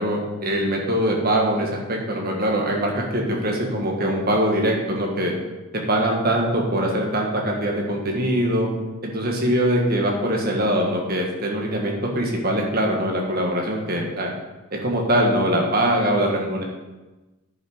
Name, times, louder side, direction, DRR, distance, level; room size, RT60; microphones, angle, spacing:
voice 1, 0.0-5.3 5.9-8.7 9.0-14.3 14.7-16.6, right 1 dB, 40° right, 0 dB, 1.7 m, -22 dB
10.5 x 5.7 x 5.0 m, 1.1 s
head